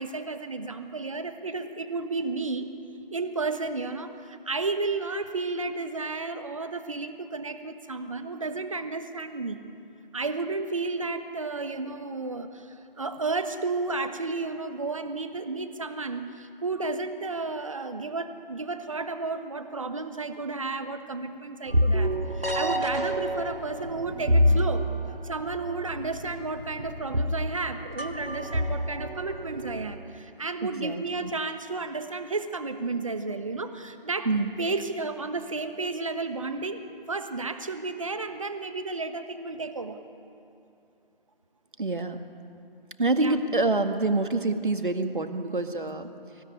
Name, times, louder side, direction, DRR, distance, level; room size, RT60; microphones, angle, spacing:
voice 1, 0.0-2.7 3.1-9.7 10.1-24.9 25.2-34.3 34.6-40.0 43.2-43.4, right 3 dB, 35° right, 8 dB, 1.3 m, -32 dB
sound 1, 21.7-30.0, equal, 80° right, 2.4 m, -28 dB
voice 2, 30.6-31.3 34.3-34.5 41.8-42.2 43.0-46.1, right 2 dB, 60° right, 7 dB, 1.9 m, -26 dB
25.0 x 16.5 x 9.9 m, 2.8 s
figure-of-eight pair, 155°, 29 cm